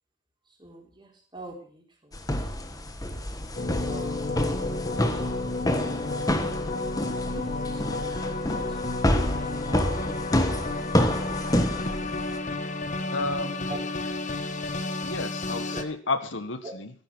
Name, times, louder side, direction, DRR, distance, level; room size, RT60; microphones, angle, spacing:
voice 1, 0.4-2.3 3.5-4.5 7.2-8.8 9.1-10.6 13.2-13.9 15.7-15.8 16.6-16.7, right 2 dB, 25° right, 0 dB, 4.6 m, -45 dB
sound 1, 2.1-12.4, left 1 dB, 20° left, 1.4 m, -28 dB
sound 2, 3.6-15.8, left 2 dB, 40° left, 1.3 m, -31 dB
voice 2, 13.1-13.8 15.0-16.9, left 3 dB, 70° left, 9 dB, 1.6 m, -32 dB
14.0 x 11.5 x 6.2 m, 0.42 s
head